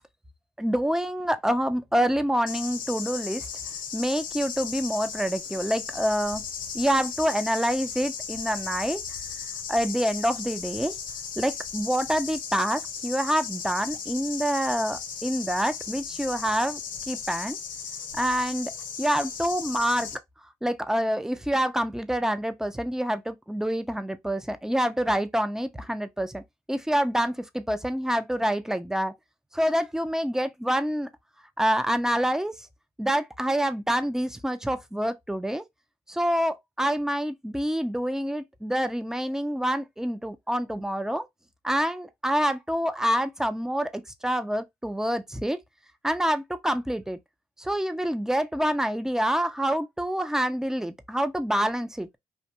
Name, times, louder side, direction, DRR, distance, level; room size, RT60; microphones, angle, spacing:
voice 1, 0.6-3.5 3.9-6.4 6.7-9.0 9.7-10.9 11.4-16.8 17.1-17.6 18.1-18.7 19.0-20.2 20.6-26.4 26.7-29.1 29.5-31.1 31.6-32.7 33.0-35.6 36.1-41.3 41.6-45.6 46.0-47.2 47.6-52.1, equal, 5° right, 0.5 m, -27 dB
sound 1, 2.5-20.1, left 6 dB, 65° left, 0.8 m, -36 dB
2.5 x 2.2 x 2.8 m
supercardioid pair, 55°, 15 cm